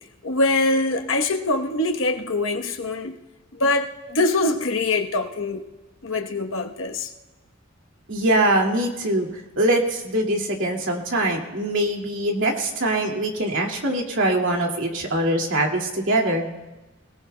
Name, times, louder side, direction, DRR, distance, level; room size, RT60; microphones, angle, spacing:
voice 1, 0.2-3.1 3.6-5.6 6.0-7.1, left 2 dB, 80° left, 3 dB, 1.1 m, -23 dB
voice 2, 8.1-9.3 9.6-16.5, right 1 dB, 70° right, 0 dB, 2.4 m, -23 dB
25.5 x 18.0 x 2.3 m, 1.1 s
head